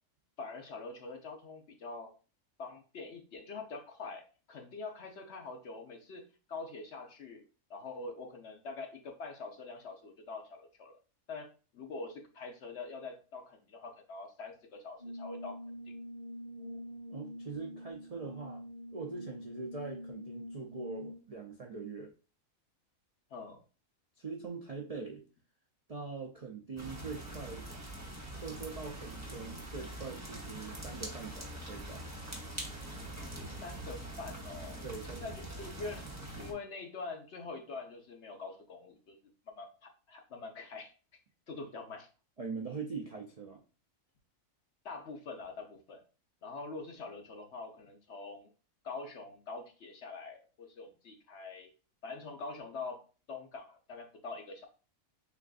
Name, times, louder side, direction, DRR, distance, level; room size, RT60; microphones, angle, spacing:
voice 1, 0.4-2.1 2.6-6.2 6.5-7.4 7.7-11.0 11.3-11.5 11.7-15.6 23.3-23.6 33.6-34.8 35.2-39.2 39.5-40.9 41.5-42.1 44.8-46.0 46.4-48.5 48.8-51.7 52.0-53.0 53.3-54.7, left 3 dB, 60° left, 3 dB, 1.0 m, -44 dB
Brass instrument, 15.0-21.4, equal, 90° right, 2.1 m, -45 dB
voice 2, 17.1-18.6 18.9-22.1 24.2-25.2 25.9-27.7 28.4-32.0 34.8-35.3 42.4-43.6, right 4 dB, 55° right, 1 dB, 0.4 m, -42 dB
sound 1, 26.8-36.5, right 1 dB, 15° right, 0.8 m, -44 dB
6.7 x 2.5 x 2.4 m, 0.35 s
omnidirectional pair, 1.4 m